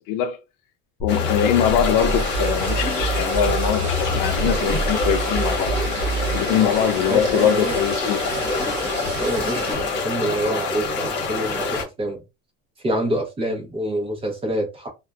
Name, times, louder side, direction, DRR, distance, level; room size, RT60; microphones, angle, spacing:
voice 1, 0.1-0.4 1.0-5.7 6.3-8.3, left 9 dB, 85° left, 0.5 m, -22 dB
sound 1, 1.0-6.5, equal, 20° left, 0.6 m, -27 dB
sound 2, 1.1-11.8, left 3 dB, 35° left, 1.0 m, -26 dB
Liquid, 1.6-9.7, right 6 dB, 60° right, 0.6 m, -35 dB
voice 2, 7.1-7.8 9.2-12.2 12.8-14.9, equal, 20° right, 0.7 m, -26 dB
2.5 x 2.1 x 2.3 m
cardioid pair, 155°, 31 cm